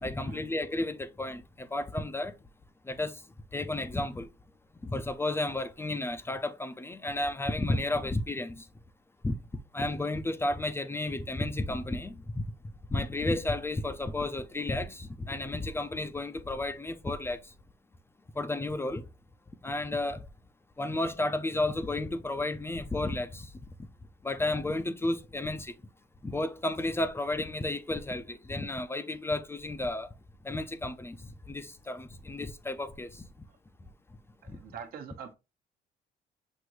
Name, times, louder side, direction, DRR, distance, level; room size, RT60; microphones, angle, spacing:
voice 1, 0.0-2.3 2.9-3.2 3.5-4.3 4.8-8.7 9.2-9.4 9.7-12.4 12.9-17.4 18.4-19.0 19.6-20.3 20.8-23.5 24.2-25.7 26.2-30.1 30.4-31.2 31.5-33.2 34.5-34.6, left 2 dB, 15° left, 0.5 m, -32 dB
voice 2, 34.4-35.3, right 7 dB, 60° right, 1.1 m, -44 dB
6.1 x 2.6 x 3.1 m
cardioid pair, 110°, 17 cm